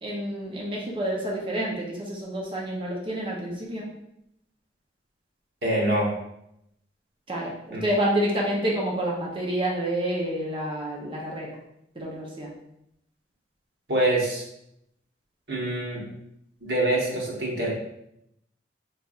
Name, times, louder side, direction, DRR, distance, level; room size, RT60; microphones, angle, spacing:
voice 1, 0.0-3.9 7.3-11.6 11.9-12.5, right 1 dB, 30° right, -3 dB, 0.7 m, -28 dB
voice 2, 5.6-6.1 7.7-7.9 13.9-14.4 15.5-16.1 16.6-17.7, right 1 dB, 75° right, -4 dB, 1.1 m, -25 dB
4.1 x 3.3 x 2.4 m, 0.80 s
head